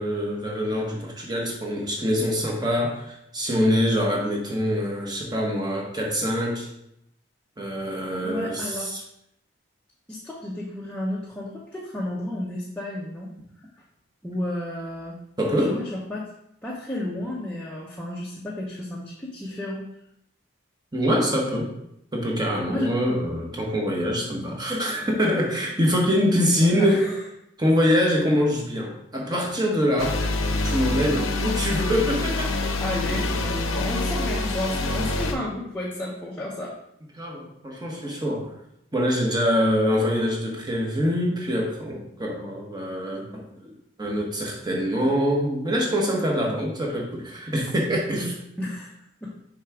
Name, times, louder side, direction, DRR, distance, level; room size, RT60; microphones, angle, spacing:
voice 1, 0.0-6.7 7.6-9.0 15.4-15.8 20.9-21.7 22.1-27.1 27.6-30.2 30.6-32.5 37.2-38.5 38.9-48.3, equal, 20° right, -1 dB, 1.1 m, -24 dB
voice 2, 8.2-8.9 10.1-13.3 14.2-15.2 15.6-16.3 16.6-19.8 22.7-22.9 26.3-27.2 32.8-36.7 48.1-48.3 48.6-48.9 49.2-49.3, left 1 dB, 5° left, -5 dB, 0.7 m, -32 dB
sound 1, 30.0-35.3, left 2 dB, 85° left, 0.8 m, -26 dB
6.4 x 3.4 x 4.9 m, 0.78 s
head